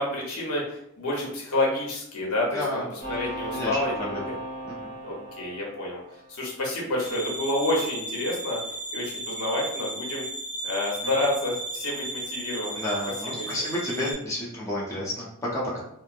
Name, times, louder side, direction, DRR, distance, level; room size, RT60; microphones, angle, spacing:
voice 1, 0.0-4.3 5.0-6.0 6.3-8.6 8.9-10.2 10.6-12.9 13.2-13.5, left 1 dB, 85° left, -3 dB, 0.9 m, -29 dB
voice 2, 2.5-2.8 3.5-4.2 4.6-4.9 12.7-15.8, left 1 dB, 15° left, -7 dB, 0.6 m, -31 dB
sound 1, 3.0-6.7, equal, 30° right, 1.2 m, -37 dB
sound 2, 7.0-14.1, right 2 dB, 40° left, 0.9 m, -35 dB
3.0 x 2.1 x 2.5 m, 0.75 s
head